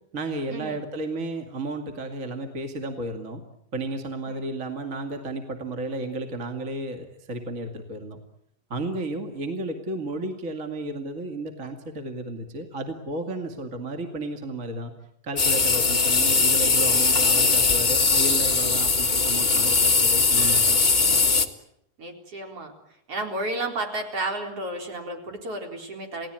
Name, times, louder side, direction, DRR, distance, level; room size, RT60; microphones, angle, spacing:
voice 1, 0.1-3.4 3.7-8.2 8.7-14.9 15.2-20.8 21.1-21.2, right 2 dB, 25° right, 5 dB, 2.2 m, -33 dB
sound 1, 15.4-21.4, left 4 dB, 85° left, 0.4 m, -20 dB
voice 2, 22.0-22.7 23.1-26.3, right 2 dB, 45° right, 3 dB, 4.8 m, -32 dB
29.5 x 18.5 x 9.1 m, 0.76 s
omnidirectional pair, 4.0 m